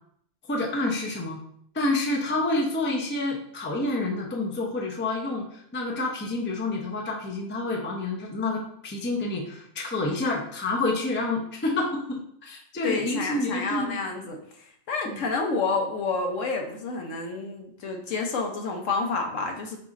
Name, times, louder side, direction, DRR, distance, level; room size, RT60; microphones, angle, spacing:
voice 1, 0.5-1.4 1.7-14.0 15.0-15.2, left 2 dB, 15° left, 0 dB, 0.4 m, -28 dB
voice 2, 12.8-14.4 14.9-19.8, left 4 dB, 75° left, 3 dB, 1.1 m, -29 dB
4.8 x 3.9 x 2.4 m, 0.67 s
omnidirectional pair, 1.3 m